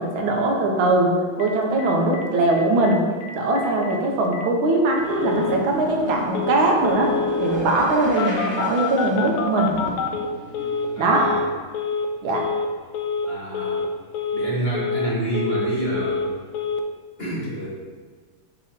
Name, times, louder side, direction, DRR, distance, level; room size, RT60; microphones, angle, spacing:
voice 1, 0.0-3.0 3.3-9.8 11.0-11.3 12.2-12.5, right 2 dB, 85° right, 0 dB, 1.8 m, -21 dB
Telephone, 1.4-1.5 1.8-2.2 2.5-2.9 3.2-3.3 3.6-3.9 4.3-4.4 4.9-5.6 6.3-6.6 6.8-7.6 8.2-10.9 11.1-11.5 11.7-12.1 12.3-12.7 12.9-13.3 13.5-13.9 14.1-14.5 14.7-15.7 15.9-16.3 16.5-16.8, left 5 dB, 85° left, 1.4 m, -27 dB
sound 1, 5.0-11.4, right 1 dB, 35° right, 1.2 m, -34 dB
voice 2, 11.0-11.4 13.2-13.9 14.3-16.3 17.2-17.7, right 1 dB, 35° left, -6 dB, 1.1 m, -28 dB
7.4 x 3.0 x 5.8 m, 1.5 s
omnidirectional pair, 2.2 m